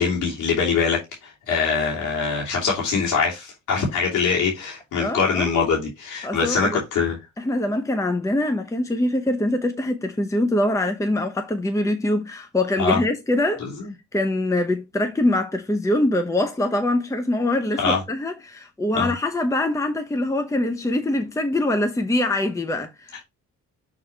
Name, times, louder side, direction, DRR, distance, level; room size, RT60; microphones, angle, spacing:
voice 1, 0.0-7.2 12.8-13.0 13.6-13.9 17.8-18.0 18.9-19.1, left 5 dB, 80° left, 2.8 m, -23 dB
voice 2, 5.0-5.6 6.2-6.8 7.4-13.6 14.1-23.2, left 1 dB, 10° left, 0.8 m, -23 dB
6.4 x 3.6 x 4.5 m
cardioid pair, 90°, 30 cm